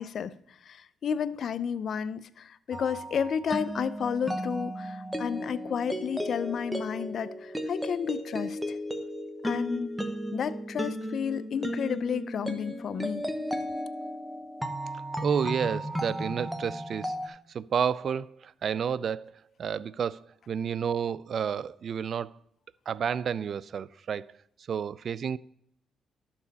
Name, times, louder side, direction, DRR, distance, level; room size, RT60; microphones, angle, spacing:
voice 1, 0.0-8.8 9.4-9.9 10.3-13.3, left 7 dB, 55° left, 0.5 m, -32 dB
sound 1, 2.7-17.3, equal, 5° right, 1.0 m, -35 dB
voice 2, 15.2-19.3 19.6-22.3 22.9-24.3 24.7-25.4, right 7 dB, 55° right, 0.3 m, -31 dB
12.5 x 7.0 x 4.1 m
cardioid pair, 90°, 0 cm